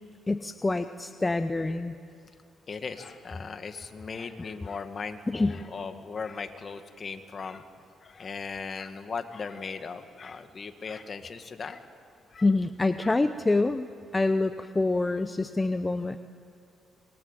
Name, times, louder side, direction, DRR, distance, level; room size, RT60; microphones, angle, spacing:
voice 1, 0.3-2.0 5.3-5.6 12.4-13.9 14.1-16.2, left 2 dB, 20° left, 10 dB, 0.8 m, -26 dB
voice 2, 2.7-7.7 8.0-11.8 12.3-12.5 13.0-13.2 15.0-15.1 16.0-16.1, left 5 dB, 40° left, 8 dB, 1.9 m, -38 dB
26.0 x 22.5 x 9.1 m, 2.4 s
cardioid pair, 90°, 0 cm